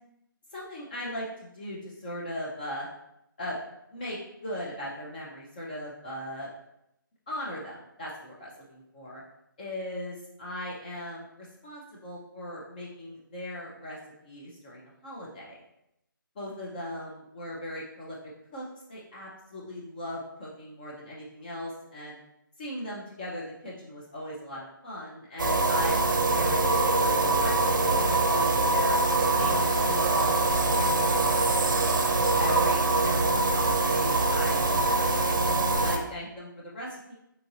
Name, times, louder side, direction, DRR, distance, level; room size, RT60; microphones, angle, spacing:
voice 1, 0.5-2.9 3.4-3.6 3.9-6.5 7.3-9.2 9.6-15.6 16.4-18.2 18.5-22.2 22.6-29.0 29.4-32.0 32.4-37.1, left 1 dB, 25° left, -5 dB, 0.5 m, -39 dB
sound 1, 25.4-36.0, right 2 dB, 65° right, 0.5 m, -24 dB
3.9 x 2.5 x 2.7 m, 0.80 s
figure-of-eight pair, 155°, 11 cm